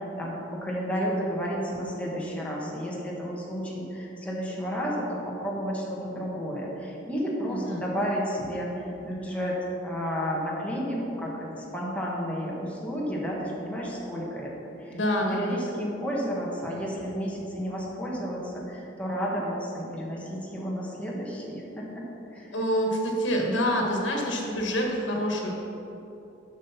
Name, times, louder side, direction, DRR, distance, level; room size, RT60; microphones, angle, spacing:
voice 1, 0.0-9.6 9.8-14.5 14.8-15.0 15.3-22.0 22.3-22.5, equal, 5° left, -4 dB, 1.5 m, -32 dB
voice 2, 7.5-7.8 14.9-15.6 22.5-25.5, equal, 75° left, 0 dB, 1.5 m, -27 dB
7.5 x 6.2 x 5.7 m, 3.0 s
head